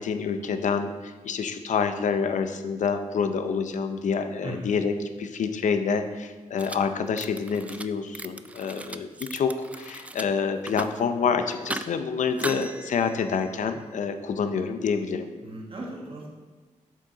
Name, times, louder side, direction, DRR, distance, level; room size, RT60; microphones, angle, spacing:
voice 1, 0.0-15.3, left 6 dB, 70° left, 8 dB, 0.6 m, -27 dB
sound 1, 6.6-6.8 7.1-7.9 8.2-10.3 10.6-11.0 11.5-11.9 12.3-13.7, right 2 dB, 10° right, 0.3 m, -37 dB
voice 2, 15.4-16.3, right 1 dB, 45° right, -2 dB, 1.4 m, -38 dB
7.4 x 6.5 x 4.0 m, 1.3 s
wide cardioid pair, 105°, 13 cm